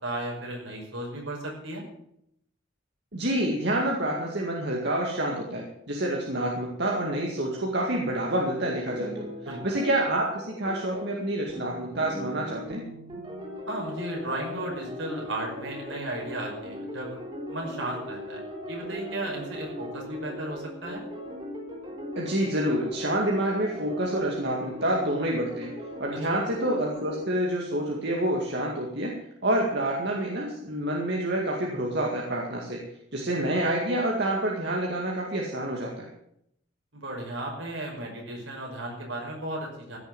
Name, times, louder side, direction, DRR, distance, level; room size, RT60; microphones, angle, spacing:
voice 1, 0.0-1.8 9.2-9.8 13.7-17.2 17.5-18.4 18.7-21.0 26.3-26.4 36.9-40.0, right 1 dB, 80° right, -1 dB, 5.6 m, -35 dB
voice 2, 3.1-9.3 9.6-12.8 22.2-25.7 26.0-29.1 29.4-32.8 33.1-36.1, right 1 dB, 60° right, -1 dB, 2.2 m, -28 dB
sound 1, 8.6-27.2, equal, 25° right, 4.2 m, -39 dB
15.5 x 6.7 x 8.9 m, 0.74 s
head